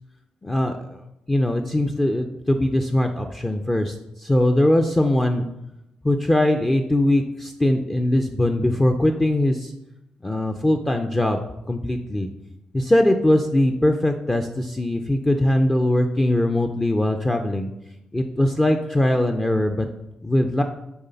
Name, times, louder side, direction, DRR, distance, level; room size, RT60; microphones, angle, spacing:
voice 1, 0.4-1.0 1.3-5.5 6.0-9.7 10.2-11.4 11.7-12.3 12.7-17.7 18.1-19.9 20.2-20.6, left 1 dB, 15° left, 4 dB, 0.4 m, -21 dB
7.9 x 3.2 x 5.6 m, 0.88 s
cardioid pair, 115°, 3 cm